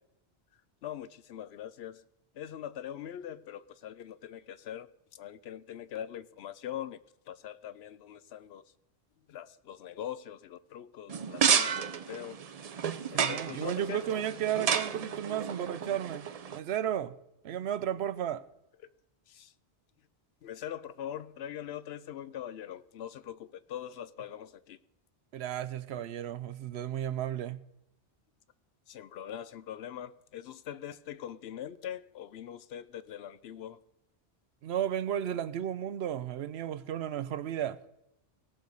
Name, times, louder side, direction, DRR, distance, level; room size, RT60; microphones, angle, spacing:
voice 1, 0.8-2.0 2.3-7.0 7.3-8.6 9.3-12.4 13.1-14.2 19.3-19.5 20.4-24.8 28.9-33.8, left 10 dB, 75° left, 0.8 m, -42 dB
sound 1, 11.1-16.6, right 7 dB, 45° right, 0.5 m, -31 dB
voice 2, 13.1-17.2 17.4-18.4 25.3-27.6 34.6-37.8, right 10 dB, 75° right, 0.8 m, -33 dB
17.5 x 6.4 x 5.3 m
omnidirectional pair, 1.1 m